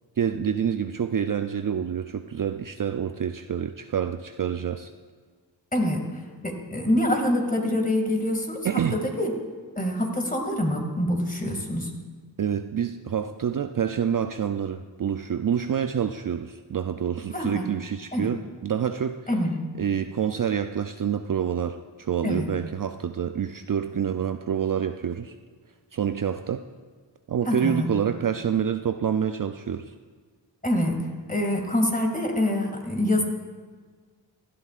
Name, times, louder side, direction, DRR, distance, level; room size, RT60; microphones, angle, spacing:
voice 1, 0.2-4.9 8.6-9.0 12.4-19.2 19.8-25.3 25.9-26.6 27.3-29.9, right 8 dB, 45° right, 8 dB, 0.5 m, -27 dB
voice 2, 6.4-9.3 9.8-11.9 17.3-17.7 18.1-18.3 19.3-19.6 22.2-22.5 27.4-27.9 30.6-31.0 31.3-33.2, left 1 dB, 20° left, 2 dB, 2.3 m, -25 dB
17.0 x 12.0 x 2.5 m, 1.5 s
cardioid pair, 50°, 45 cm